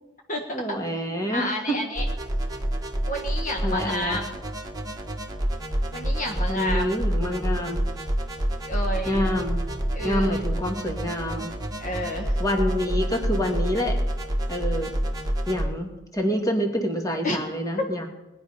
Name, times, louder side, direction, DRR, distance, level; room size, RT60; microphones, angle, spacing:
voice 1, 0.5-1.8 3.6-4.2 6.5-7.9 9.1-9.6 10.0-11.5 12.4-14.0 14.5-14.9 15.5-18.1, equal, 15° left, 2 dB, 1.9 m, -27 dB
voice 2, 1.3-2.0 3.1-4.4 5.9-7.0 8.7-9.3 9.9-10.4 11.8-12.4 17.2-17.4, left 1 dB, 40° left, 2 dB, 1.3 m, -30 dB
sound 1, 2.0-15.7, right 1 dB, 20° right, 1.6 m, -28 dB
19.5 x 10.5 x 5.5 m, 1.0 s
head